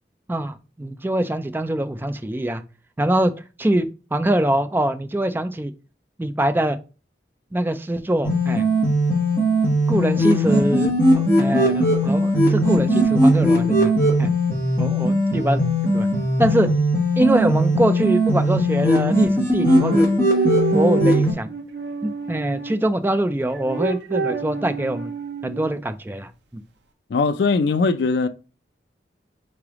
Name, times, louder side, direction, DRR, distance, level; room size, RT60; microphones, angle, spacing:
voice 1, 0.3-2.6 3.0-3.3 3.6-5.7 6.2-6.8 7.5-8.7 9.9-13.9 14.2-14.3 14.8-15.6 15.9-16.1 16.4-16.7 17.2-20.1 20.7-21.5 22.0-25.1 25.4-26.6, right 1 dB, 10° right, 0.3 m, -23 dB
sound 1, 8.2-21.3, equal, 15° left, 1.3 m, -19 dB
sound 2, 19.7-22.8 23.5-25.8, right 5 dB, 80° right, 0.6 m, -27 dB
voice 2, 27.1-28.3, left 4 dB, 70° left, 0.3 m, -20 dB
3.8 x 3.3 x 3.5 m
head